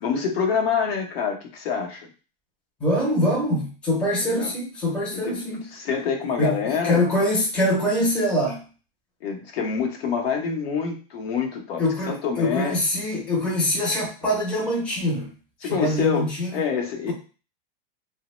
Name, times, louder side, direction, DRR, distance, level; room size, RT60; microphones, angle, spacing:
voice 1, 0.0-2.1 4.3-4.5 5.1-7.0 9.2-12.8 15.6-17.1, left 6 dB, 80° left, 3 dB, 0.8 m, -26 dB
voice 2, 2.8-5.7 6.4-8.7 11.8-15.3 15.6-16.6, left 1 dB, 5° left, -4 dB, 0.4 m, -24 dB
2.9 x 2.1 x 3.0 m, 0.36 s
supercardioid pair, 160°, 30 cm